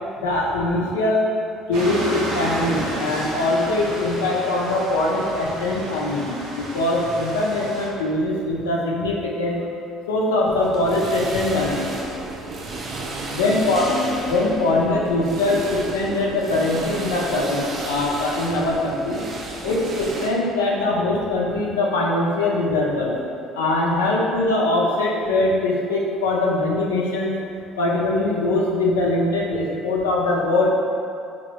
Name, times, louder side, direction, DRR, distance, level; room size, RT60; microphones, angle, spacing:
voice 1, 0.2-1.3 1.7-9.6 10.1-11.9 13.3-13.8 14.3-19.2 19.6-23.1 23.6-27.3 27.8-30.7, left 2 dB, 85° left, -3 dB, 0.4 m, -22 dB
sound 1, 1.7-7.9, right 1 dB, 75° right, 0.7 m, -31 dB
sound 2, 10.5-20.3, right 2 dB, 45° right, 0.4 m, -32 dB
sound 3, 13.8-16.0, left 3 dB, 30° left, 0.6 m, -33 dB
3.0 x 2.6 x 2.8 m, 2.5 s
hypercardioid pair, 60°, 0 cm